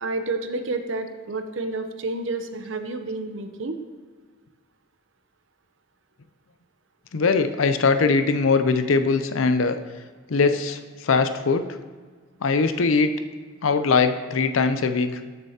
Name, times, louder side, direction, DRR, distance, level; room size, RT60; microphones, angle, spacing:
voice 1, 0.0-3.8, right 3 dB, 65° right, 7 dB, 0.7 m, -30 dB
voice 2, 7.1-9.8 10.3-11.7 12.4-13.1 13.6-15.1, left 4 dB, 80° left, 9 dB, 0.6 m, -21 dB
13.5 x 6.7 x 2.8 m, 1.5 s
head